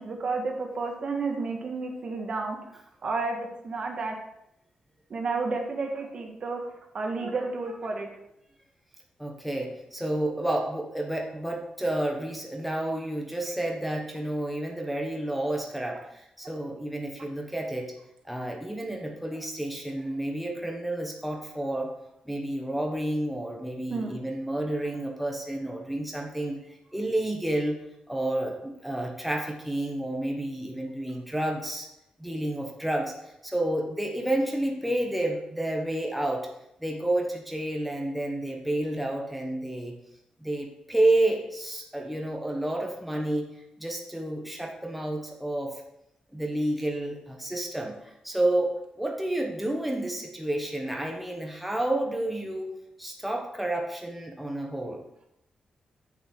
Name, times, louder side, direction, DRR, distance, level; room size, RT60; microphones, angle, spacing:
voice 1, 0.0-4.1 5.1-6.6 6.9-8.1 23.9-24.1, right 3 dB, 50° right, 2 dB, 1.6 m, -31 dB
voice 2, 9.2-17.9 18.2-21.9 22.2-31.9 32.2-36.5 36.8-39.9 40.4-45.8 46.3-52.7 53.0-55.0, right 1 dB, ahead, 1 dB, 1.1 m, -30 dB
8.1 x 7.0 x 4.7 m, 0.81 s
wide cardioid pair, 135°, 2 cm